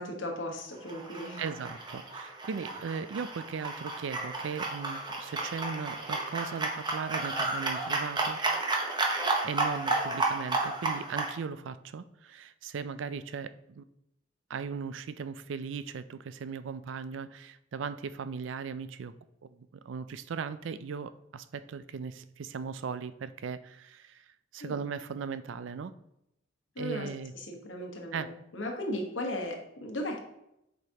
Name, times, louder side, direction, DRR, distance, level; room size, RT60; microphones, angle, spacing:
voice 1, 0.0-1.4 24.6-24.8 26.7-27.1 27.3-30.2, left 1 dB, 85° left, 2 dB, 1.3 m, -36 dB
sound 1, 0.8-11.3, right 3 dB, 25° right, 0.8 m, -32 dB
voice 2, 1.4-8.4 9.4-13.8 14.5-19.1 19.4-24.2 24.5-25.9 26.8-27.3 28.1-28.3, right 6 dB, 80° right, 13 dB, 0.4 m, -38 dB
7.8 x 5.1 x 2.9 m, 0.81 s
head